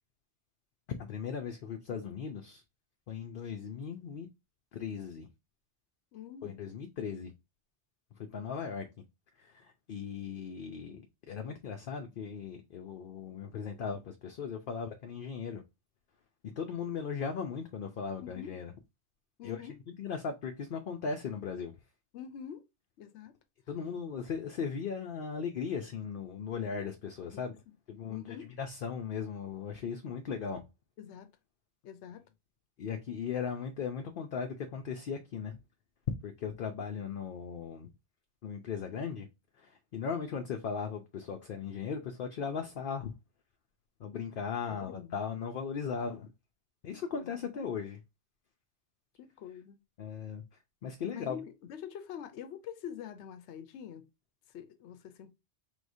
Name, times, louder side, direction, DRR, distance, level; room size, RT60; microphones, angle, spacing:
voice 1, 1.0-2.6 3.1-4.3 4.7-5.3 6.4-7.3 8.2-8.9 9.4-15.6 16.6-18.7 19.4-19.6 20.0-21.7 23.7-27.5 27.9-30.6 32.8-35.6 36.2-37.9 38.4-39.3 39.6-43.1 44.0-46.3 46.8-48.0 50.0-50.4 50.8-51.4, left 6 dB, 60° left, 0.7 m, -38 dB
voice 2, 6.1-6.6 18.2-18.5 19.4-19.8 22.1-22.6 23.0-23.4 27.3-27.7 28.1-28.6 31.0-31.3 31.8-32.3 44.7-45.2 46.9-47.7 49.2-49.8 51.1-54.1 54.5-55.3, left 9 dB, 80° left, 0.9 m, -46 dB
4.8 x 3.6 x 2.6 m
omnidirectional pair, 1.2 m